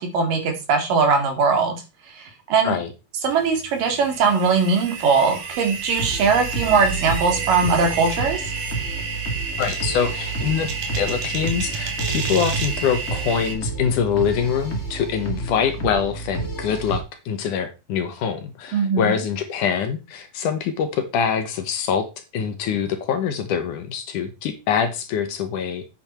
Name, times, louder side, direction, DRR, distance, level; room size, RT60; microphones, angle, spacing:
voice 1, 0.0-1.8 2.1-2.8 3.2-8.5 18.7-19.1, right 5 dB, 70° right, 5 dB, 3.8 m, -20 dB
sound 1, 3.3-13.5, right 5 dB, 90° right, 3.8 m, -30 dB
sound 2, 6.0-17.0, right 3 dB, 25° left, 1.8 m, -31 dB
voice 2, 9.6-22.1 22.3-25.9, left 7 dB, 70° left, 8 dB, 2.4 m, -24 dB
8.8 x 8.4 x 4.3 m, 0.27 s
omnidirectional pair, 4.1 m